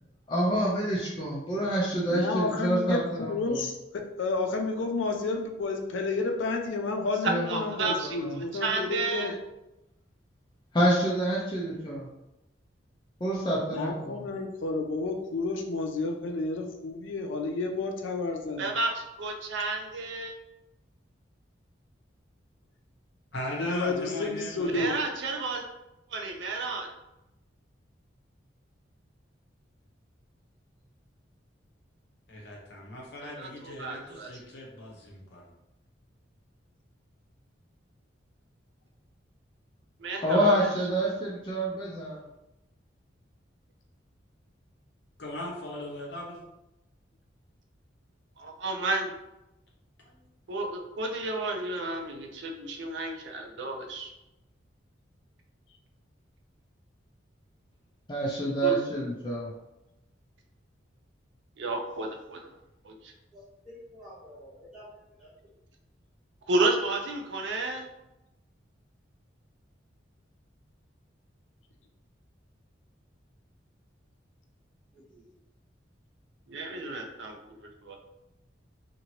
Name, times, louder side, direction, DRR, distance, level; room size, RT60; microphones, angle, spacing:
voice 1, 0.3-3.6 7.3-7.6 8.0-8.4 10.7-12.1 13.2-14.3 40.2-42.2 58.1-59.5, right 1 dB, 25° left, -4 dB, 0.5 m, -27 dB
voice 2, 2.1-9.3 13.7-18.7 23.6-25.0, left 3 dB, 85° left, 3 dB, 0.4 m, -31 dB
voice 3, 7.5-8.2 8.6-9.3 18.6-20.3 24.7-25.6 26.1-26.9 33.2-34.3 40.0-40.6 48.4-49.1 50.5-54.1 58.6-58.8 61.6-62.5 62.8-63.1 66.5-67.9 76.5-78.0, right 2 dB, 70° right, 2 dB, 0.5 m, -32 dB
voice 4, 23.3-24.8 32.3-35.5 45.2-46.4 50.1-50.2, left 1 dB, 60° left, -2 dB, 0.8 m, -39 dB
voice 5, 63.3-64.9 65.2-65.5 74.9-75.3, equal, ahead, -9 dB, 1.1 m, -50 dB
2.8 x 2.6 x 2.9 m, 0.92 s
head